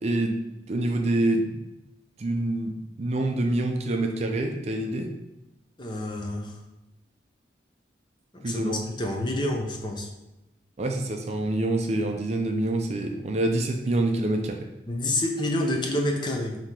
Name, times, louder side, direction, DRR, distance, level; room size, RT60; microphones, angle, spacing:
voice 1, 0.0-0.4 0.7-1.6 2.2-5.1 8.4-8.8 10.8-14.6, right 2 dB, 35° right, 3 dB, 0.4 m, -26 dB
voice 2, 5.8-6.5 8.3-10.1 14.9-16.6, left 1 dB, 25° left, 1 dB, 0.5 m, -28 dB
3.7 x 2.8 x 4.4 m, 0.95 s
head